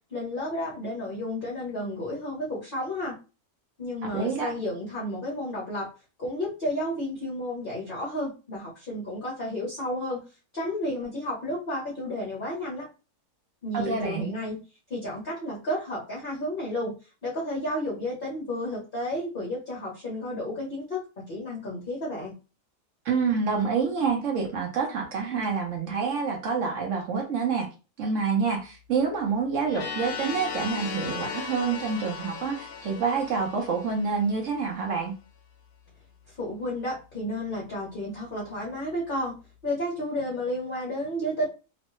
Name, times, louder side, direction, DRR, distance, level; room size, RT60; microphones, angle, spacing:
voice 1, 0.1-3.1 3.8-5.9 6.2-10.2 10.5-12.9 13.6-14.6 14.9-16.9 17.2-21.0 21.3-22.3 36.3-39.4 39.6-41.5, left 1 dB, 40° left, -5 dB, 0.9 m, -32 dB
voice 2, 4.0-4.5 13.7-14.3 23.0-27.7 28.0-35.1, right 5 dB, 60° right, 1 dB, 1.0 m, -27 dB
sound 1, 29.7-34.5, left 6 dB, 70° left, 0.9 m, -37 dB
3.0 x 2.2 x 3.0 m, 0.32 s
omnidirectional pair, 1.7 m